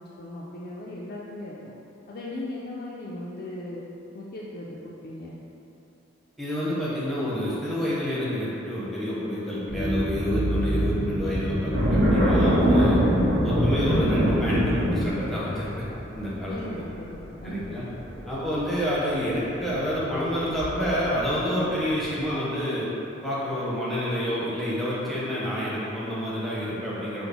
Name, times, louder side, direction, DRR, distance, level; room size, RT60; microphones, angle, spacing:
voice 1, 0.0-1.7 2.1-3.8 4.1-5.3 16.5-17.7, left 1 dB, 50° left, -6 dB, 0.3 m, -38 dB
voice 2, 6.4-13.0 13.4-15.8 16.1-16.6 17.4-17.8 18.3-22.9 23.2-27.3, equal, ahead, -9 dB, 0.7 m, -28 dB
sound 1, 9.7-15.1, right 1 dB, 25° right, 1.4 m, -28 dB
sound 2, 11.7-21.4 21.8-22.3, equal, 55° right, 1.1 m, -25 dB
5.9 x 2.0 x 3.4 m, 3.0 s
head